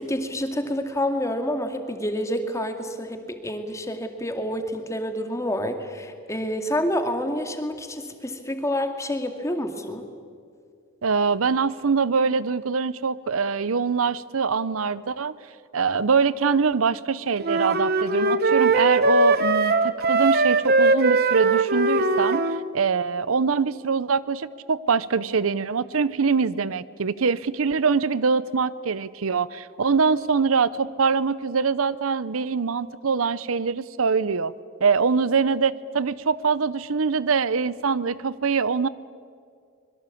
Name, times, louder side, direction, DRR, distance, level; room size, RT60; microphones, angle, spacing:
voice 1, 0.0-10.1, left 1 dB, 15° left, 6 dB, 2.2 m, -28 dB
voice 2, 11.0-15.3 15.7-22.4 22.7-34.5 34.8-38.9, right 5 dB, 75° right, 18 dB, 0.7 m, -23 dB
sound 1, 17.4-22.6, right 3 dB, 45° right, 1.1 m, -20 dB
25.5 x 22.5 x 8.5 m, 2.2 s
head